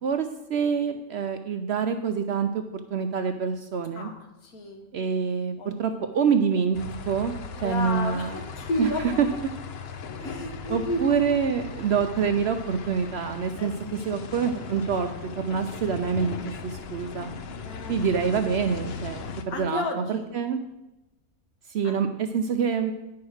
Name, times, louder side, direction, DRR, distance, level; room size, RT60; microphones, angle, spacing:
voice 1, 0.0-2.6 2.9-4.1 4.9-6.8 7.1-8.4 8.8-8.9 9.2-9.3 10.2-10.3 10.7-13.7 14.0-16.4 16.6-17.3 17.9-19.8 20.1-20.6 21.7-22.9, right 6 dB, 65° right, 7 dB, 0.7 m, -26 dB
voice 2, 3.9-4.8 5.6-6.4 7.5-9.0 10.2-11.3 13.5-13.7 14.0-14.2 17.6-18.1 19.5-20.3 21.8-22.1, left 1 dB, 85° left, 4 dB, 1.7 m, -32 dB
sound 1, 6.7-19.4, left 5 dB, 60° left, 0.7 m, -38 dB
9.5 x 4.7 x 6.3 m, 0.96 s
omnidirectional pair, 1.5 m